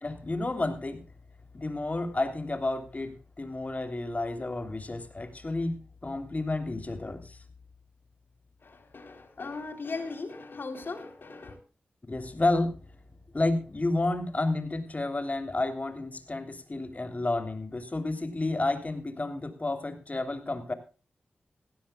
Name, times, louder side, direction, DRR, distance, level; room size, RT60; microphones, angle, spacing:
voice 1, 0.0-1.0 1.5-7.4 12.1-12.8 13.3-20.7, left 2 dB, 40° left, 3.1 m, -31 dB
voice 2, 8.6-11.6, left 3 dB, 70° left, 3.6 m, -38 dB
17.0 x 16.0 x 2.3 m
cardioid pair, 40°, 4 cm